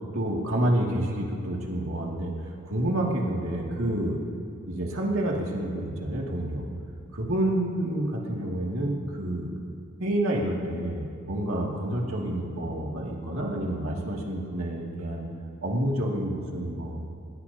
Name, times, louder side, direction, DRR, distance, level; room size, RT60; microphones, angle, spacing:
voice 1, 0.1-4.2 4.6-6.7 7.1-9.5 10.0-15.3 15.6-17.0, right 1 dB, 75° right, -2 dB, 2.6 m, -28 dB
20.5 x 20.0 x 2.9 m, 2.5 s
head